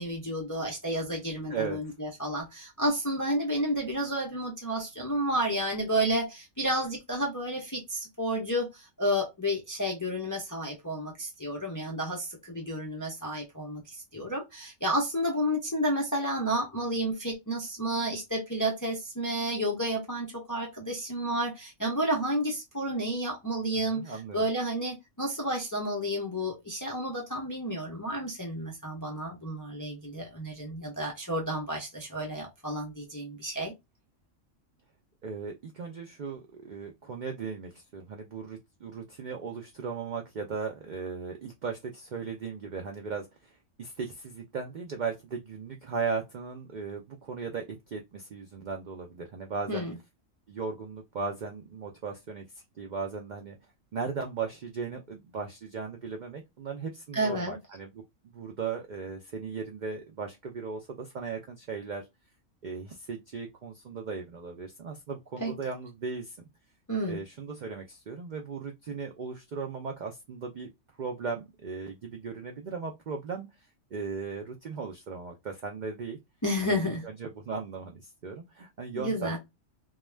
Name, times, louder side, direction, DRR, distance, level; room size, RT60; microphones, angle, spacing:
voice 1, 0.0-33.7 49.7-50.0 57.1-57.6 65.4-65.5 66.9-67.2 76.4-77.0 78.9-79.4, right 1 dB, 30° left, 0.3 m, -31 dB
voice 2, 1.5-1.9 23.9-24.4 35.2-43.5 43.8-49.9 50.5-53.6 53.9-58.0 58.3-62.0 62.6-66.5 67.1-70.7 71.0-73.5 73.9-76.2 76.6-79.4, right 5 dB, 75° right, 0.4 m, -37 dB
2.3 x 2.2 x 3.2 m
omnidirectional pair, 1.4 m